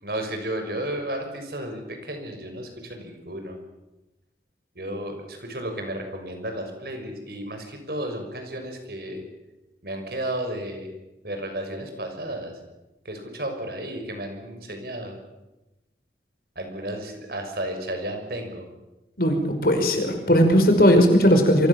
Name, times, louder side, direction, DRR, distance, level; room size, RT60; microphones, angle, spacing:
voice 1, 0.0-3.6 4.7-9.2 9.8-10.9 11.2-12.6 13.0-15.2 16.5-18.6, right 1 dB, 60° right, 5 dB, 6.5 m, -33 dB
voice 2, 19.2-21.7, equal, 55° left, 5 dB, 5.3 m, -18 dB
29.0 x 24.5 x 7.3 m, 1.0 s
head